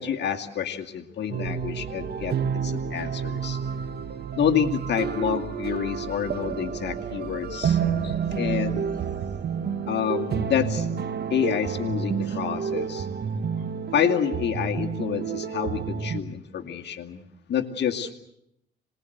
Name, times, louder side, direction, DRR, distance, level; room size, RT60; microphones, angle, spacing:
voice 1, 0.0-2.3 2.6-3.6 4.4-8.9 9.9-10.9 11.3-13.1 13.9-17.2 17.5-18.1, left 8 dB, 60° left, 3 dB, 2.4 m, -28 dB
sound 1, 1.3-16.2, right 7 dB, 55° right, 1.5 m, -29 dB
sound 2, 1.5-10.5, right 9 dB, 70° right, 3.1 m, -42 dB
26.0 x 20.5 x 8.1 m, 0.76 s
cardioid pair, 90°, 20 cm